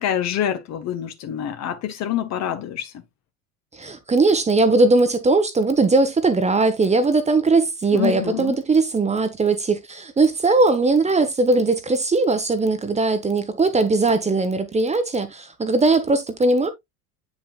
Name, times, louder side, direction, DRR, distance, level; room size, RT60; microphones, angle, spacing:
voice 1, 0.0-2.9 7.9-8.6, left 10 dB, 35° left, 1.2 m, -26 dB
voice 2, 3.7-16.7, right 3 dB, 15° right, 1.1 m, -19 dB
8.6 x 5.5 x 2.4 m
figure-of-eight pair, 75°, 44 cm